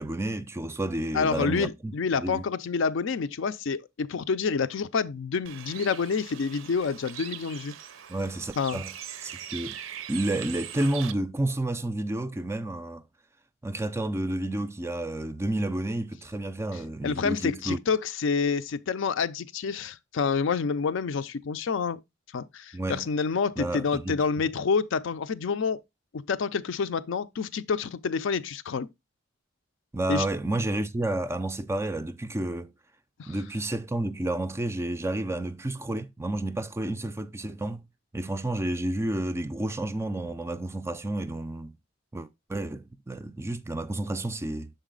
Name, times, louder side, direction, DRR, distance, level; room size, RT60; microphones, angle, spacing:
voice 1, 0.0-2.5 8.1-8.9 9.2-9.8 10.1-13.0 13.6-17.8 22.7-23.1 23.6-24.2 29.9-32.7 33.3-37.8 38.1-41.7 42.1-44.7, right 1 dB, 15° right, 0.3 m, -30 dB
voice 2, 1.1-7.7 8.6-8.8 17.0-22.0 22.3-25.8 26.1-28.9 30.1-30.3 33.2-33.4, left 5 dB, 65° left, 0.4 m, -28 dB
Bird, 5.4-11.1, right 10 dB, 70° right, 0.5 m, -41 dB
6.6 x 4.0 x 3.7 m
head